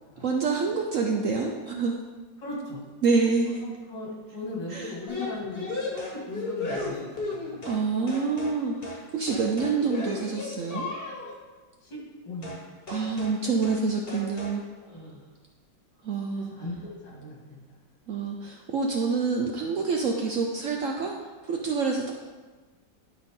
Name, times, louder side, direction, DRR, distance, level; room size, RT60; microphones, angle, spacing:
voice 1, 0.2-2.0 3.0-3.6 4.7-4.9 7.6-10.9 12.9-14.6 16.0-16.5 18.1-21.2 21.4-22.1, right 4 dB, 65° right, 1 dB, 0.8 m, -27 dB
voice 2, 2.4-2.8 3.6-6.0 6.3-7.0 7.3-7.7 11.8-12.0 12.2-12.5 14.9-15.2 16.3-17.6, left 2 dB, 85° left, -5 dB, 3.0 m, -38 dB
sound 1, 5.1-8.6 8.8-9.0 9.3-11.4 12.4-12.6 12.9-13.4 13.6-13.8 14.1-14.6, left 3 dB, 35° left, 1.3 m, -35 dB
11.5 x 4.1 x 3.7 m, 1.3 s
omnidirectional pair, 1.9 m